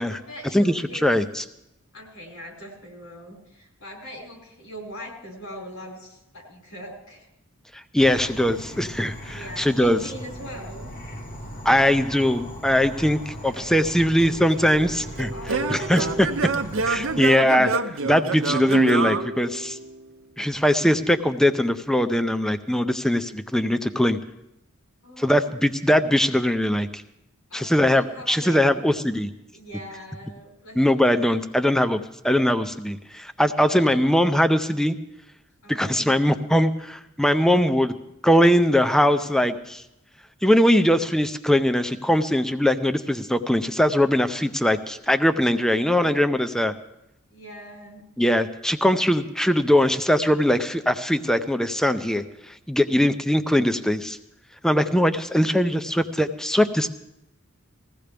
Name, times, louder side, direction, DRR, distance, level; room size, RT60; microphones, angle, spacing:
voice 1, 0.1-1.1 1.9-7.3 9.2-10.9 13.1-13.7 15.3-16.3 25.0-25.5 27.5-28.6 29.5-31.2 33.6-34.1 35.6-36.4 45.9-46.3 47.3-48.0, equal, 75° left, -1 dB, 5.0 m, -41 dB
voice 2, 1.0-1.4 7.9-10.0 11.6-15.3 15.7-16.3 16.9-17.7 18.0-19.8 20.4-24.2 25.2-27.0 27.5-29.3 30.8-35.0 35.7-37.9 38.2-39.8 40.4-46.7 48.2-52.2 52.7-54.2 54.6-56.9, equal, ahead, 9 dB, 0.5 m, -21 dB
Insect / Frog, 8.0-17.2, equal, 40° left, 1.2 m, -38 dB
Singing / Plucked string instrument, 14.2-20.1, right 4 dB, 65° right, 0.7 m, -27 dB
20.5 x 15.5 x 3.4 m, 0.86 s
head